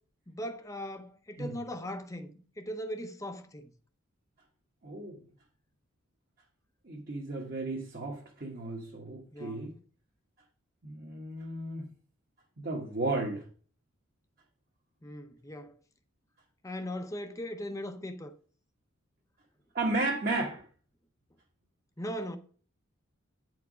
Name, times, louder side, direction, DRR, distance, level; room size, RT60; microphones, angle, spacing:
voice 1, 0.3-3.7 9.3-9.7 15.0-15.8 16.6-18.3 22.0-22.4, equal, 15° left, 0.6 m, -39 dB
voice 2, 4.8-5.2 6.8-9.7 10.8-11.8 12.6-13.4 19.7-20.6, right 2 dB, 45° right, 1.4 m, -34 dB
9.3 x 4.7 x 6.1 m
head